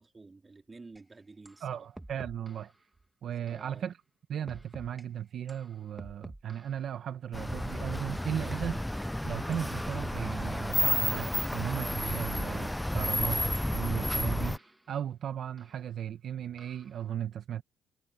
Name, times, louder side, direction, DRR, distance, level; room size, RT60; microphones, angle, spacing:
voice 1, 0.0-1.9 3.5-3.9, right 3 dB, 25° right, 3.8 m, -51 dB
sound 1, 1.0-1.1 1.5-1.6 2.0-2.7 3.5-3.7 4.5-5.0 5.5-6.9 7.5-7.7 8.5-9.1 9.5-9.7 10.0-10.9 11.5-11.8 12.5-13.1 13.6-14.9 15.6-15.7 16.6-17.0, right 1 dB, 10° right, 1.8 m, -49 dB
voice 2, 1.6-2.7 3.2-3.9 4.3-8.8 9.2-17.6, right 9 dB, 65° right, 1.0 m, -36 dB
sound 2, 7.3-14.6, left 1 dB, 5° left, 0.3 m, -31 dB
cardioid pair, 90°, 0 cm